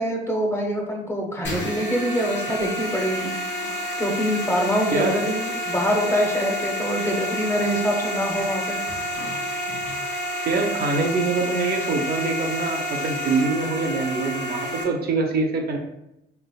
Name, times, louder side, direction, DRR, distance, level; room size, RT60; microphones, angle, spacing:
voice 1, 0.0-3.3 4.0-8.8, equal, 10° left, 0 dB, 0.7 m, -24 dB
sound 1, 1.4-14.8, equal, 65° left, 1.2 m, -29 dB
voice 2, 10.5-15.8, right 3 dB, 50° right, 2 dB, 0.6 m, -24 dB
3.3 x 3.2 x 2.2 m, 0.85 s
cardioid pair, 90°, 20 cm